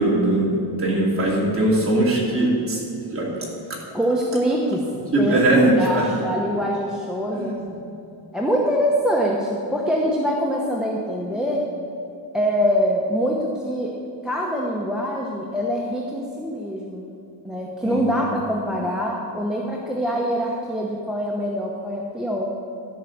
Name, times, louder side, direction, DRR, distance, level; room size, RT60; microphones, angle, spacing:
voice 1, 0.0-2.8 3.1-3.3 5.1-6.0 7.3-7.6 17.8-18.0, right 1 dB, 25° right, -4 dB, 3.0 m, -20 dB
voice 2, 3.9-4.8 5.2-7.6 8.3-11.6 12.3-13.9 14.2-17.1 17.4-22.5, equal, ahead, -2 dB, 0.8 m, -24 dB
14.0 x 5.6 x 7.2 m, 2.6 s
cardioid pair, 150°, 48 cm